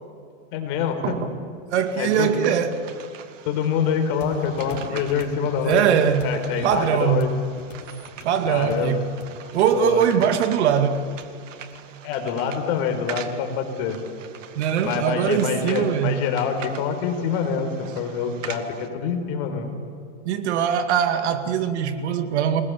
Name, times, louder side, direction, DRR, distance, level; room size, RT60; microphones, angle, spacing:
voice 1, 0.5-1.1 2.0-2.3 3.4-5.8 6.2-7.3 8.5-9.0 9.7-10.3 12.0-14.0 14.8-19.7, left 6 dB, 45° left, 5 dB, 4.9 m, -25 dB
voice 2, 1.7-2.7 5.6-7.3 8.2-9.1 9.5-11.0 14.6-16.2 20.3-22.6, right 8 dB, 65° right, 8 dB, 2.5 m, -22 dB
sound 1, 1.8-18.9, right 8 dB, 90° right, 2.2 m, -43 dB
sound 2, 4.2-11.8, left 6 dB, 90° left, 3.5 m, -45 dB
28.5 x 21.0 x 8.5 m, 2.4 s
supercardioid pair, 150°, 37 cm